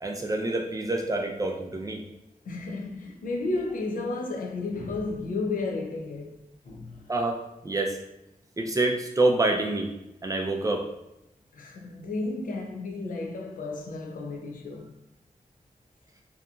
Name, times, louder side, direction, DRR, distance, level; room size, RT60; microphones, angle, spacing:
voice 1, 0.0-2.0 7.1-8.0 8.6-9.9 10.2-10.9, right 2 dB, 25° right, 0.3 m, -27 dB
voice 2, 2.4-6.4 6.6-7.0 11.5-14.9, left 3 dB, 90° left, 0.5 m, -33 dB
2.8 x 2.3 x 2.4 m
wide cardioid pair, 115°, 14 cm